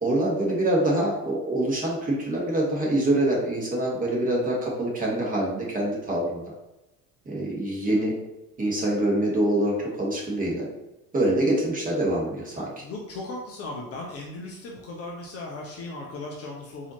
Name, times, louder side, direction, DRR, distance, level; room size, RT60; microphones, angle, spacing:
voice 1, 0.0-6.5 7.3-8.1 8.6-10.7 11.1-12.7, right 1 dB, 20° right, -4 dB, 1.3 m, -25 dB
voice 2, 12.8-16.9, left 2 dB, 35° left, -1 dB, 0.6 m, -37 dB
4.1 x 2.8 x 2.8 m, 0.98 s
figure-of-eight pair, 65°, 44 cm